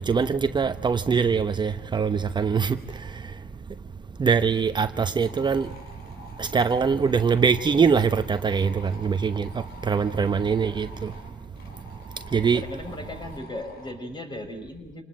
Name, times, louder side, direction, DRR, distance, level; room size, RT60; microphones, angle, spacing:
voice 1, 0.1-2.8 4.2-5.7 6.4-9.5 9.9-10.9 12.3-12.6, right 6 dB, 25° right, 0.9 m, -22 dB
sound 1, 5.2-13.9, left 1 dB, 70° left, 6.8 m, -48 dB
voice 2, 10.0-10.9 12.2-15.0, left 1 dB, 25° left, 6.4 m, -38 dB
27.5 x 19.5 x 8.9 m
cardioid pair, 110°, 17 cm